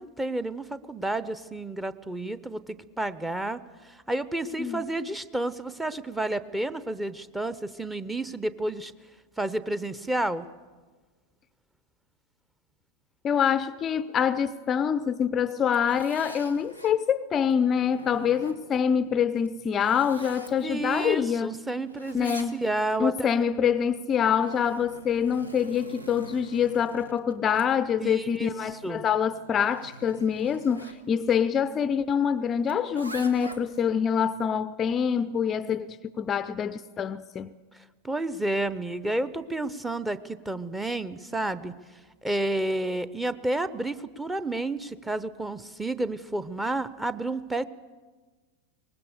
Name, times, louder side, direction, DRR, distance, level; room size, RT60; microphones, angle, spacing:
voice 1, 0.0-3.6 3.9-8.9 9.4-10.5 20.6-23.3 28.0-29.0 38.0-41.7 42.2-47.7, right 2 dB, 5° right, 0.9 m, -30 dB
voice 2, 13.2-21.5 22.1-22.6 23.0-37.5, left 7 dB, 25° left, 0.6 m, -25 dB
Zipper (clothing), 15.4-17.0 17.5-18.9 19.4-21.6 21.9-23.0 23.9-31.0 32.7-33.9, right 1 dB, 80° right, 1.4 m, -45 dB
23.5 x 20.0 x 6.7 m
figure-of-eight pair, 90°, 0 cm